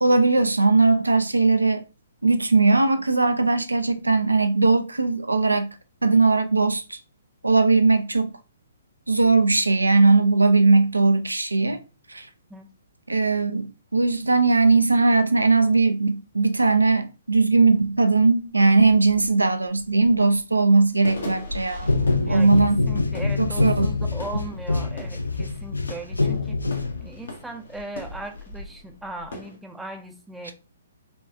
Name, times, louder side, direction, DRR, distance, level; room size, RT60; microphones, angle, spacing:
voice 1, 0.0-1.8 2.2-5.8 6.0-7.0 7.4-8.3 9.1-11.8 12.1-12.3 13.1-21.9 22.3-22.8 23.4-23.9, right 3 dB, 80° right, 0.4 m, -19 dB
sound 1, 18.4-29.6, left 2 dB, 60° left, 0.9 m, -41 dB
sound 2, 21.8-27.4, left 3 dB, 80° left, 0.5 m, -25 dB
voice 2, 22.2-26.6 27.0-30.5, right 2 dB, 5° right, 0.5 m, -38 dB
4.2 x 2.3 x 2.6 m
figure-of-eight pair, 125°, 0 cm